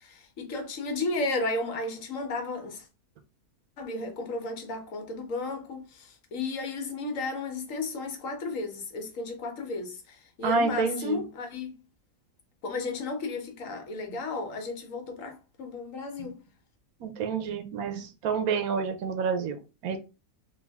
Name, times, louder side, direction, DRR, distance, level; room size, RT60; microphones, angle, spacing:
voice 1, 0.0-2.8 3.8-11.7 12.6-16.4, left 3 dB, 65° left, 1.2 m, -33 dB
voice 2, 10.4-11.2 14.1-14.2 16.2-16.3 17.0-20.0, right 5 dB, 85° right, 1.2 m, -29 dB
3.4 x 2.4 x 3.4 m
omnidirectional pair, 1.5 m